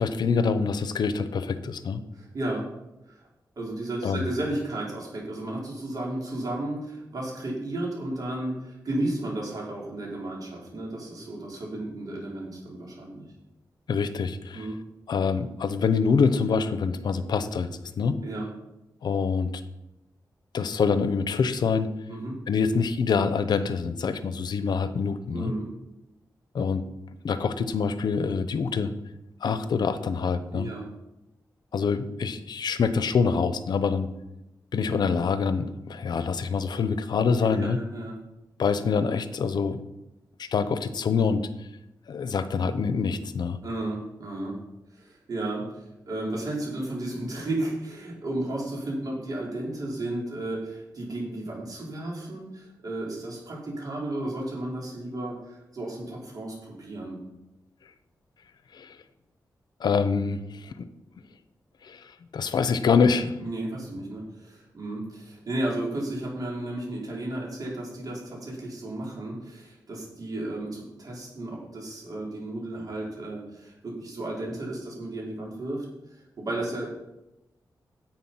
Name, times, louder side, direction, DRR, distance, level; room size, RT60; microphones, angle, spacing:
voice 1, 0.0-2.0 4.0-4.3 13.9-14.7 15.1-18.2 19.0-19.6 20.5-21.9 22.5-25.5 26.5-26.8 27.2-28.9 29.4-30.7 31.7-34.1 34.7-37.8 38.6-39.8 40.4-41.5 42.1-43.6 58.7-59.0 59.8-60.9 61.8-62.0 62.3-63.4, left 5 dB, 80° left, 12 dB, 0.8 m, -25 dB
voice 2, 2.1-2.7 3.1-3.2 3.6-13.3 14.5-14.8 18.2-18.5 22.1-22.4 25.3-25.7 30.5-30.9 37.5-38.1 43.6-44.6 44.9-57.2 63.4-75.8 76.4-76.9, right 1 dB, 60° right, -3 dB, 4.5 m, -33 dB
10.5 x 8.1 x 5.7 m, 0.91 s
wide cardioid pair, 100°, 7 cm